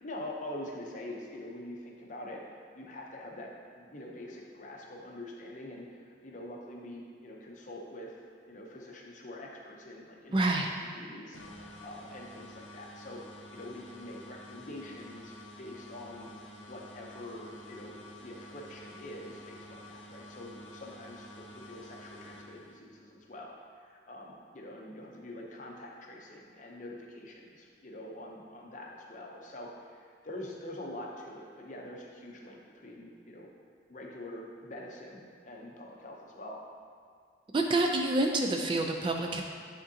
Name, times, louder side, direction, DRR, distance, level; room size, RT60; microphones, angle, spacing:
voice 1, 0.0-2.4 2.7-8.1 8.5-16.3 16.6-33.5 33.9-36.6, left 1 dB, 40° left, -1 dB, 0.7 m, -45 dB
voice 2, 10.3-10.7 37.5-39.4, right 2 dB, 25° right, 2 dB, 0.3 m, -27 dB
sound 1, 11.3-23.1, left 1 dB, 80° left, 0.8 m, -50 dB
9.5 x 3.7 x 2.8 m, 2.1 s
head